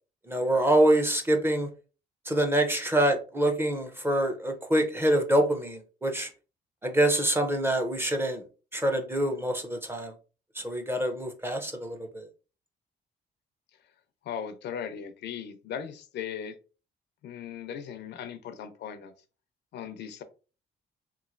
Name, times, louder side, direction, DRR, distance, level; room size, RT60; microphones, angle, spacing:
voice 1, 0.3-1.7 2.3-6.3 6.8-8.4 8.7-10.1 10.6-12.3, right 1 dB, 10° right, 0.5 m, -25 dB
voice 2, 14.3-16.5 17.2-19.1 19.7-20.2, left 8 dB, 70° left, 0.5 m, -38 dB
3.0 x 2.5 x 2.5 m
cardioid pair, 130°, 18 cm